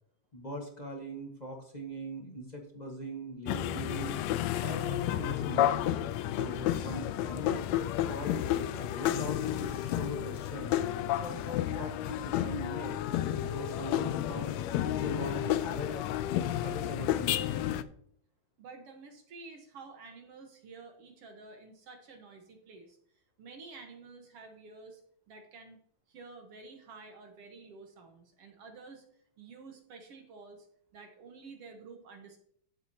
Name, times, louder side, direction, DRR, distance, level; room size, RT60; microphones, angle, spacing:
voice 1, 0.3-4.2 4.6-5.8 6.3-7.6 8.1-8.5 8.7-10.8 11.1-13.0 13.5-14.6 15.0-16.0 16.6-17.5, left 1 dB, 35° left, 0 dB, 0.6 m, -40 dB
sound 1, 3.5-17.8, left 12 dB, 80° left, 1.6 m, -31 dB
voice 2, 18.6-23.0 23.4-25.0 25.3-25.8 26.1-29.0 29.4-30.7 30.9-32.4, right 4 dB, 60° right, 4 dB, 2.0 m, -50 dB
14.5 x 7.8 x 2.8 m, 0.64 s
omnidirectional pair, 3.4 m